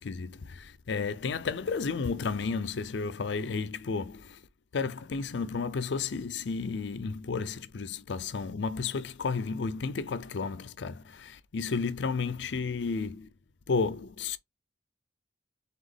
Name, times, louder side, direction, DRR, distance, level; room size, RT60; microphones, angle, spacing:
voice 1, 0.0-4.4 4.7-13.3 13.7-14.4, left 4 dB, 65° left, 0.5 m, -32 dB
4.2 x 3.4 x 3.4 m
head